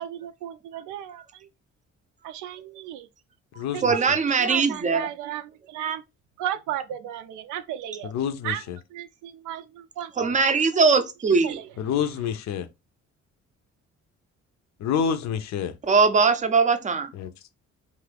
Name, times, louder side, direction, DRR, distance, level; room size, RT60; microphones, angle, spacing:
voice 1, 0.0-1.5 2.2-3.1 3.7-6.0 6.4-8.1 8.4-8.6 8.9-10.5 11.4-11.7, right 11 dB, 90° right, 0.5 m, -34 dB
voice 2, 3.8-5.1 10.2-11.6 15.9-17.1, right 4 dB, 25° right, 0.5 m, -21 dB
voice 3, 8.0-8.8 11.8-12.7 14.8-15.7 17.1-17.3, left 7 dB, 65° left, 0.5 m, -27 dB
2.6 x 2.5 x 3.3 m
cardioid pair, 90°, 30 cm